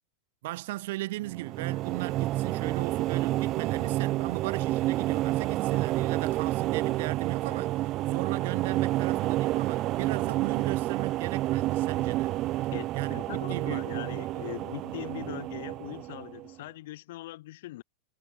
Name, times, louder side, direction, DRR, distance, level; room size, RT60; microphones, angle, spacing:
voice 1, 0.4-12.4 12.9-13.2 13.5-14.0, right 18 dB, 50° right, 1.3 m, -37 dB
sound 1, 1.2-16.5, right 16 dB, 35° right, 0.7 m, -29 dB
voice 2, 12.7-17.8, left 17 dB, 55° left, 2.2 m, -41 dB
figure-of-eight pair, 90°, 0 cm